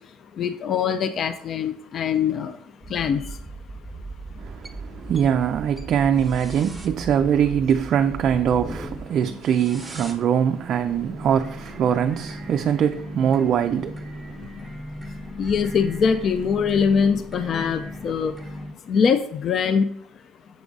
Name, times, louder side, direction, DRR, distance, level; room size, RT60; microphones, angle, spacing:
voice 1, 0.4-2.5 2.9-3.2 15.4-18.3 18.9-19.9, left 6 dB, 45° left, 0.4 m, -22 dB
sound 1, 2.8-18.7, right 1 dB, 5° right, 0.9 m, -38 dB
voice 2, 4.4-14.5, right 8 dB, 50° right, 0.3 m, -22 dB
7.1 x 3.9 x 3.6 m
supercardioid pair, 100°, 0 cm